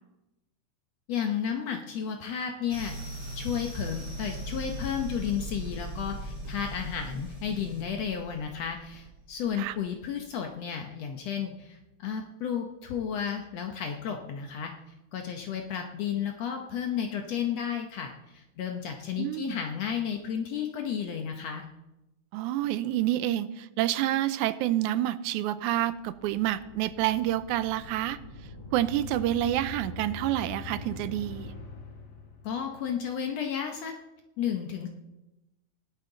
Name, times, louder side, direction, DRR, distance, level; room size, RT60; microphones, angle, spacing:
voice 1, 1.1-14.7 15.1-21.7 32.4-33.9 34.4-34.9, left 8 dB, 65° left, 4 dB, 1.9 m, -33 dB
sound 1, 2.7-10.2, right 1 dB, 35° right, 4.4 m, -39 dB
voice 2, 19.2-19.6 22.3-28.2 28.7-31.5, right 13 dB, 85° right, 14 dB, 2.0 m, -28 dB
sound 2, 25.8-32.7, left 3 dB, 40° left, 1.9 m, -43 dB
16.5 x 11.5 x 3.9 m, 0.96 s
omnidirectional pair, 3.4 m